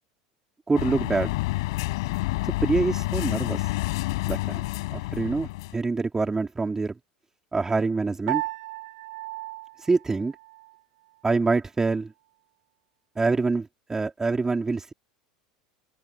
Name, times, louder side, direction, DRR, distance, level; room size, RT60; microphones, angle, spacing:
sound 1, 0.7-5.7, left 21 dB, 65° left, 5.8 m, -28 dB
voice 1, 0.7-1.3 2.4-3.7 4.3-4.6 4.9-6.9 7.5-8.4 9.8-10.3 11.2-12.1 13.2-14.9, right 3 dB, 15° right, 4.5 m, -25 dB
Piano, 8.3-10.8, right 19 dB, 65° right, 3.7 m, -34 dB
open air
figure-of-eight pair, 75°, 3 cm